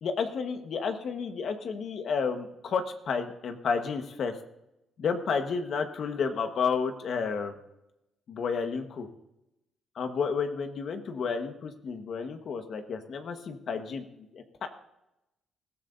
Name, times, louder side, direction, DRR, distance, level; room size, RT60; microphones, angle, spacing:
voice 1, 0.0-4.3 5.0-7.5 8.3-9.1 10.0-14.0 14.3-14.7, left 5 dB, 60° left, 7 dB, 1.3 m, -31 dB
20.0 x 14.0 x 2.7 m, 0.90 s
cardioid pair, 90°, 0 cm